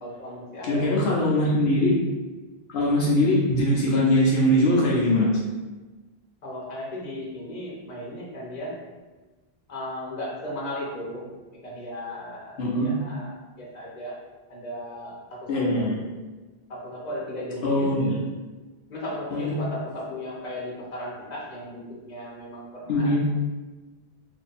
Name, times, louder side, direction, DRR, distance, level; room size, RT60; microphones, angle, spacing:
voice 1, 0.0-1.1 1.4-1.5 6.4-8.7 9.7-11.3 11.6-14.2 14.5-15.8 16.7-17.9 18.9-23.2, left 1 dB, 45° left, -5 dB, 1.0 m, -36 dB
voice 2, 0.6-1.9 2.7-5.3 12.6-12.9 15.5-16.0 17.6-18.2 19.3-19.6 22.9-23.2, left 1 dB, 75° left, -4 dB, 0.9 m, -21 dB
2.7 x 2.6 x 4.0 m, 1.2 s
omnidirectional pair, 1.1 m